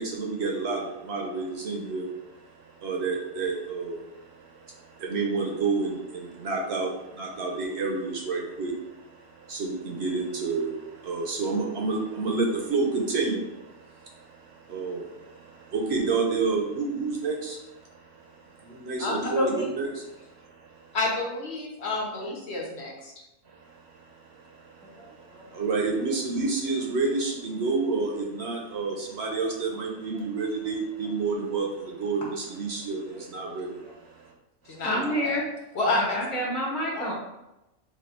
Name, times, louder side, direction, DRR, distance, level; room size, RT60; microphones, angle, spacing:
voice 1, 0.0-21.0 23.5-34.3 34.9-35.0, right 4 dB, 60° right, -1 dB, 0.8 m, -30 dB
voice 2, 19.0-19.7 20.9-23.1 34.7-35.4 35.7-36.2 36.9-37.1, left 2 dB, 60° left, -2 dB, 1.0 m, -29 dB
voice 3, 24.8-25.4 29.4-29.5 33.1-33.6 34.8-35.4 35.9-37.1, equal, ahead, -6 dB, 0.4 m, -30 dB
3.2 x 2.4 x 4.3 m, 0.94 s
omnidirectional pair, 1.4 m